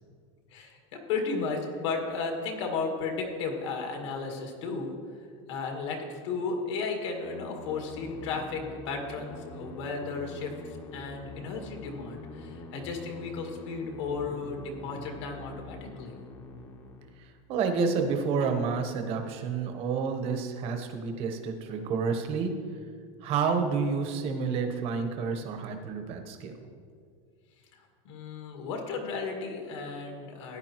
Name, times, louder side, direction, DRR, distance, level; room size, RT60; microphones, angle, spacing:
voice 1, 0.5-4.9 5.5-16.2 27.7-30.6, left 4 dB, 75° left, 2 dB, 1.9 m, -34 dB
sound 1, 7.2-17.2, left 3 dB, 25° left, 0.8 m, -45 dB
voice 2, 17.2-22.5 23.2-26.5, right 5 dB, 40° right, 5 dB, 1.0 m, -29 dB
15.0 x 9.7 x 3.0 m, 2.2 s
supercardioid pair, 160°, 15 cm